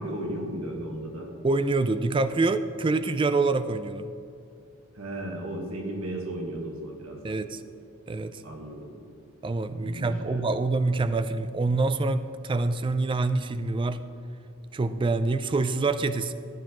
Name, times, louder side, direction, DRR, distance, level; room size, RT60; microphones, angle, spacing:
voice 1, 0.0-1.3 4.9-7.4 8.4-8.9 9.8-10.4, right 1 dB, 70° right, 0 dB, 1.6 m, -35 dB
voice 2, 1.4-4.1 7.2-7.6 8.1-8.4 9.4-14.0 14.7-16.3, right 3 dB, 20° right, 11 dB, 0.3 m, -26 dB
15.0 x 9.5 x 3.1 m, 2.6 s
head